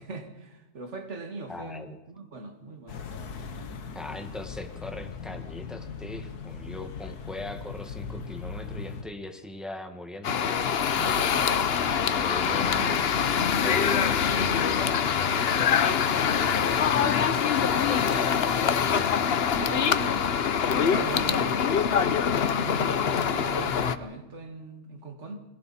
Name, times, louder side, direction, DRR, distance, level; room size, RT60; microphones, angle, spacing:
voice 1, 0.0-3.0 3.4-3.5 4.1-4.2 6.6-6.7 10.8-11.5 12.4-12.5 19.6-20.3 20.7-25.4, right 4 dB, 50° right, 4 dB, 2.3 m, -41 dB
voice 2, 1.5-2.0 3.9-10.5 12.1-13.1 13.6-17.2 17.9-18.9, left 2 dB, ahead, 5 dB, 1.5 m, -40 dB
sound 1, 2.9-9.0, left 5 dB, 80° left, 1.8 m, -39 dB
sound 2, 10.2-24.0, left 7 dB, 50° left, 0.9 m, -24 dB
29.5 x 21.0 x 4.3 m, 1.0 s
omnidirectional pair, 1.6 m